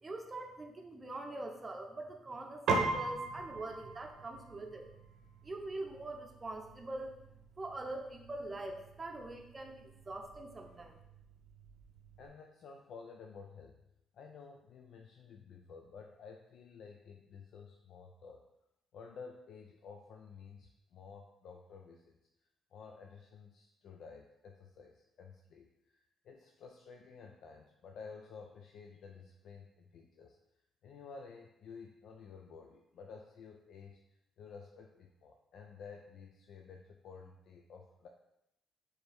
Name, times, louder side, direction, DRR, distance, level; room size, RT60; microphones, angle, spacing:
voice 1, 0.0-2.6 2.9-4.8 5.4-7.1 7.6-11.0, right 2 dB, 25° right, 3 dB, 0.6 m, -43 dB
Piano, 2.7-12.3, right 3 dB, 75° right, 0.7 m, -41 dB
voice 2, 12.2-13.8 14.1-18.4 18.9-22.2 22.7-30.4 30.8-38.1, left 5 dB, 70° left, 3 dB, 0.3 m, -52 dB
4.4 x 3.2 x 3.4 m, 0.85 s
cardioid pair, 90°, 0 cm